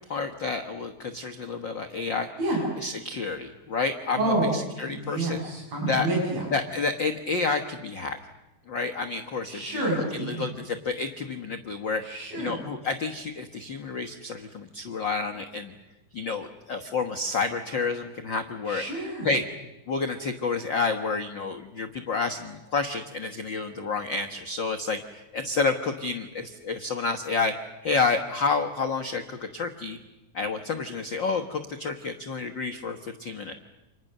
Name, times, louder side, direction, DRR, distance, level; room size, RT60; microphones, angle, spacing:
voice 1, 0.0-2.3 2.8-4.2 4.5-5.4 5.9-6.1 6.5-8.2 8.7-9.8 10.2-12.0 12.4-15.7 16.1-18.8 19.2-19.4 19.9-27.5 27.8-30.0 30.3-33.5, left 4 dB, 90° left, 4 dB, 1.0 m, -29 dB
voice 2, 4.2-4.5 4.9-6.4 9.5-10.5 12.0-12.6 18.7-19.3, right 2 dB, 70° right, -2 dB, 8.5 m, -28 dB
30.0 x 27.0 x 6.7 m, 1.0 s
omnidirectional pair, 4.3 m